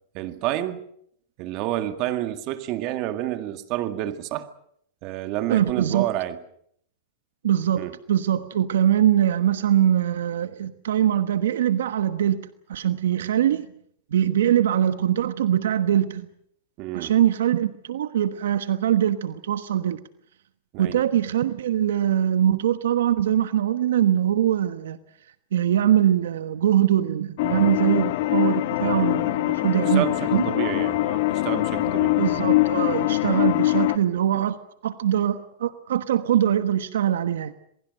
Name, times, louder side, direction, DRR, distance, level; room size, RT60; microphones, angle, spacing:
voice 1, 0.1-0.8 1.4-4.5 5.0-6.4 7.8-7.9 16.8-17.1 20.7-21.0 29.8-32.2 33.4-33.6, right 13 dB, 45° right, 2.0 m, -29 dB
voice 2, 5.5-6.1 7.4-13.7 14.1-16.3 16.9-20.0 20.8-25.0 25.5-30.4 32.2-34.6 34.8-37.5, right 10 dB, 80° right, 1.2 m, -22 dB
sound 1, 27.4-34.0, left 17 dB, 60° left, 1.6 m, -23 dB
27.5 x 21.0 x 6.5 m
hypercardioid pair, 130°, 0 cm